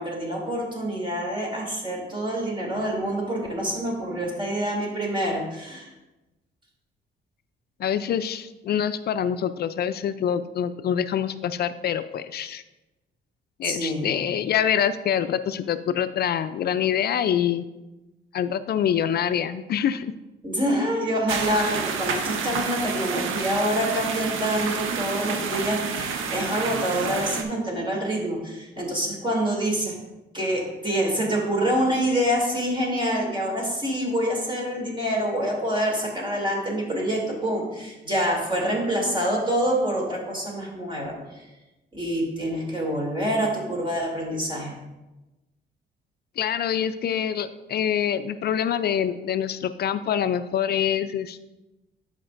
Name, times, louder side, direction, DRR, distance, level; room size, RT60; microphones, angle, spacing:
voice 1, 0.0-5.9 13.6-14.1 20.4-29.9 30.3-41.5 41.9-44.8, equal, 25° right, -2 dB, 2.7 m, -26 dB
voice 2, 7.8-12.6 13.6-17.7 18.3-20.1 46.4-51.4, left 9 dB, 55° left, 12 dB, 0.4 m, -25 dB
sound 1, 21.3-27.4, right 5 dB, 85° right, 0.8 m, -29 dB
12.0 x 5.1 x 2.5 m, 1.0 s
cardioid pair, 90°, 20 cm